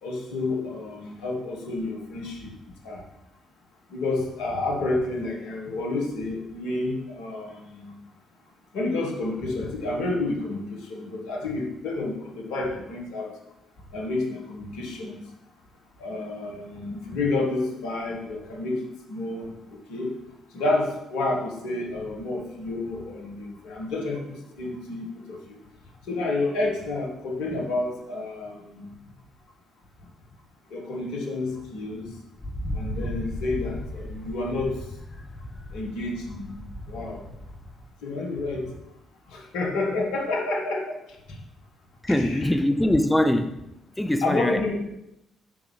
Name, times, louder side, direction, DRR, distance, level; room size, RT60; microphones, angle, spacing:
voice 1, 0.0-2.5 2.8-3.0 3.9-7.9 8.7-13.3 13.9-15.2 16.0-20.1 20.5-25.6 26.0-28.9 30.7-32.2 32.7-34.9 35.7-36.6 36.9-37.3 38.0-38.7 39.3-41.0 41.3-41.4 42.1-42.5 44.2-44.7, left 2 dB, 70° left, 0 dB, 1.3 m, -30 dB
Wind, 32.4-37.9, left 1 dB, 25° left, 1.0 m, -36 dB
voice 2, 42.0-43.7 44.0-44.6, left 1 dB, 10° left, 8 dB, 0.4 m, -22 dB
7.6 x 5.3 x 3.2 m, 0.85 s
figure-of-eight pair, 45°, 0 cm